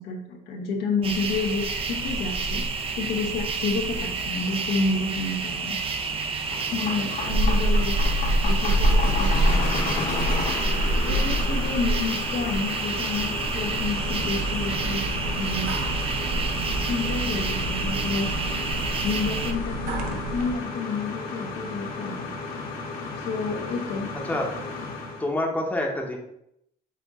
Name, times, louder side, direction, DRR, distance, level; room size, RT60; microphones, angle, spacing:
voice 1, 0.0-5.8 6.7-8.0 8.4-10.0 11.0-15.0 15.3-15.7 16.8-18.3 19.0-22.3 23.2-24.1, left 4 dB, 80° left, 1 dB, 0.9 m, -30 dB
sound 1, 1.0-19.5, right 2 dB, 35° right, 0.5 m, -26 dB
sound 2, 5.9-25.3, left 3 dB, 60° left, 1.1 m, -33 dB
sound 3, 13.3-20.6, right 2 dB, 85° right, 0.7 m, -32 dB
voice 2, 25.2-26.2, left 1 dB, 10° left, 0 dB, 0.9 m, -26 dB
5.5 x 2.6 x 3.6 m, 0.76 s
cardioid pair, 110°, 17 cm